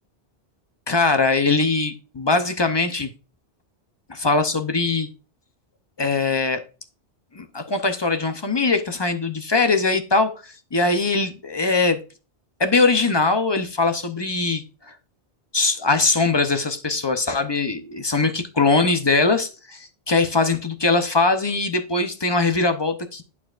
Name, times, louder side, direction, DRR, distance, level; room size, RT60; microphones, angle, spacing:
voice 1, 0.9-3.1 4.1-5.1 6.0-6.6 7.3-12.0 12.6-14.9 15.5-23.2, left 3 dB, 30° left, 0.6 m, -21 dB
8.4 x 6.8 x 2.4 m
omnidirectional pair, 1.1 m